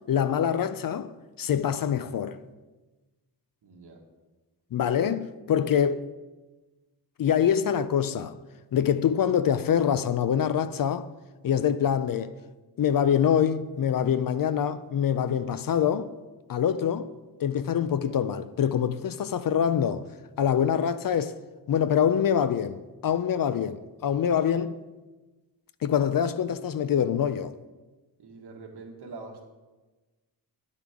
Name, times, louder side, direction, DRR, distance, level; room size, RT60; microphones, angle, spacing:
voice 1, 0.1-1.1 1.4-2.4 4.7-6.1 7.2-8.4 8.7-11.1 11.4-12.3 12.8-16.1 16.5-17.1 17.4-20.1 20.4-21.4 21.7-24.8 25.8-27.6, left 8 dB, 60° left, 0.4 m, -25 dB
voice 2, 3.6-4.0 28.2-29.5, right 3 dB, 75° right, 1.7 m, -44 dB
10.0 x 9.6 x 3.6 m
wide cardioid pair, 150°, 40 cm